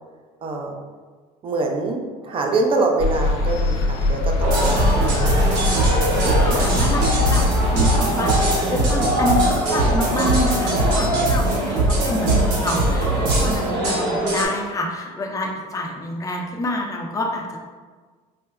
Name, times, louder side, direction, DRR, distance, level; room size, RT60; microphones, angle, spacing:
voice 1, 0.4-0.8 1.4-5.6, right 3 dB, 35° right, 2 dB, 0.5 m, -25 dB
sound 1, 3.0-8.0, left 2 dB, 80° left, 0.5 m, -22 dB
sound 2, 4.4-14.5, right 1 dB, 90° right, 1.0 m, -23 dB
sound 3, 4.5-13.7, right 2 dB, 60° right, 0.9 m, -22 dB
voice 2, 6.4-7.4 7.7-8.4 8.7-17.6, left 1 dB, 20° left, 0 dB, 0.5 m, -27 dB
4.4 x 2.1 x 2.3 m, 1.5 s
supercardioid pair, 105°, 16 cm